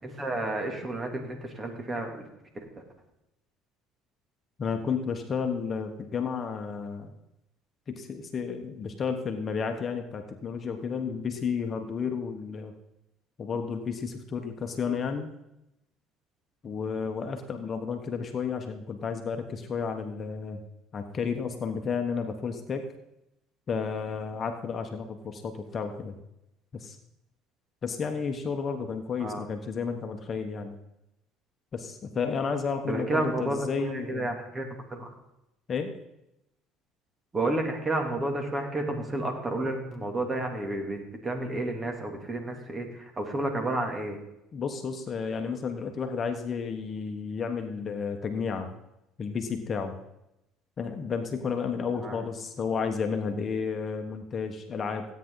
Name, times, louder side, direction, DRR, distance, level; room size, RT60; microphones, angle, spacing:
voice 1, 0.0-2.2 29.2-29.4 32.9-35.1 37.3-44.2 52.0-52.2, right 2 dB, 25° right, 3 dB, 2.8 m, -31 dB
voice 2, 4.6-7.1 7.9-12.7 13.4-15.3 16.6-20.6 20.9-22.9 23.7-26.2 26.7-27.0 27.8-30.8 31.7-34.3 35.7-35.9 44.5-48.7 49.2-50.0 50.8-55.1, left 5 dB, 40° left, 5 dB, 1.3 m, -32 dB
16.0 x 9.4 x 4.0 m, 0.87 s
supercardioid pair, 95°, 0 cm